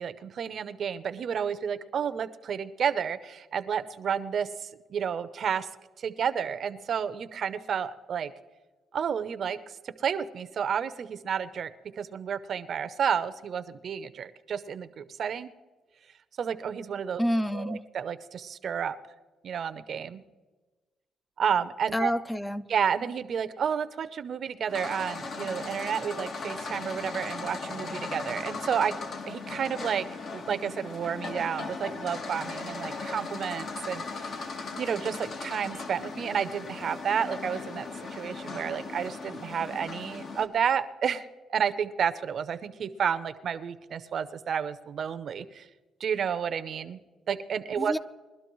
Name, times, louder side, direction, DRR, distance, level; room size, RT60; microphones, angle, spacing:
voice 1, 0.0-5.7 6.0-8.3 8.9-9.6 9.8-11.7 12.0-15.5 16.4-17.2 17.5-19.0 19.4-20.2 21.4-22.1 22.7-29.0 29.3-30.1 30.3-34.0 34.8-41.2 41.5-45.6 46.0-47.0 47.3-47.9, right 7 dB, 55° right, 0.6 m, -31 dB
voice 2, 17.2-17.8 21.9-22.7 47.8-48.0, equal, 10° left, 0.4 m, -28 dB
sound 1, 24.7-40.5, left 3 dB, 60° left, 1.3 m, -38 dB
21.5 x 12.0 x 3.1 m
cardioid pair, 90°, 0 cm